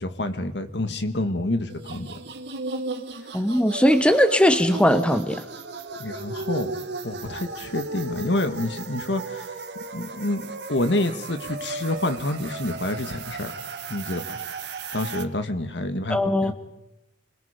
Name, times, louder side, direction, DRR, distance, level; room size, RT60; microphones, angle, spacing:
voice 1, 0.0-2.2 6.0-6.7 7.0-9.5 9.9-13.5 13.9-14.4 14.9-16.5, left 1 dB, 75° left, 9 dB, 1.9 m, -28 dB
sound 1, 1.7-15.2, right 3 dB, 70° right, 1.8 m, -35 dB
voice 2, 3.3-5.4 16.1-16.5, equal, 5° left, 10 dB, 1.1 m, -19 dB
29.5 x 22.0 x 5.2 m, 0.88 s
head